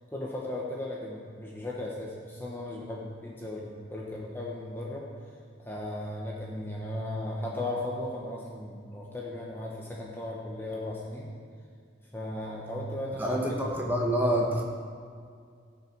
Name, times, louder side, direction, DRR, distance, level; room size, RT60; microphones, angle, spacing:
voice 1, 0.0-5.1 5.6-11.3 12.1-13.9, left 1 dB, 10° left, -4 dB, 1.0 m, -36 dB
voice 2, 13.2-14.6, equal, 10° right, -1 dB, 1.3 m, -27 dB
17.5 x 5.9 x 4.7 m, 2.2 s
head